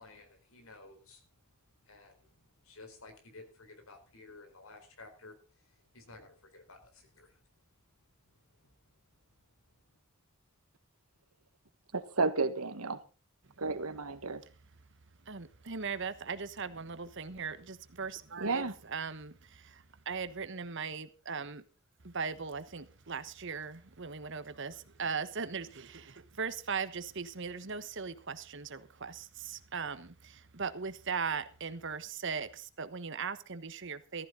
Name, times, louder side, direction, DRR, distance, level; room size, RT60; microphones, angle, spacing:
voice 1, 0.0-1.4 1.8-7.5 8.2-10.0, left 3 dB, 70° left, 4.4 m, -55 dB
voice 2, 11.9-13.0 13.6-14.4 18.4-18.7, right 3 dB, 85° right, 1.6 m, -32 dB
voice 3, 15.2-21.6 22.0-34.3, right 5 dB, 55° right, 1.2 m, -39 dB
14.5 x 14.5 x 3.9 m
head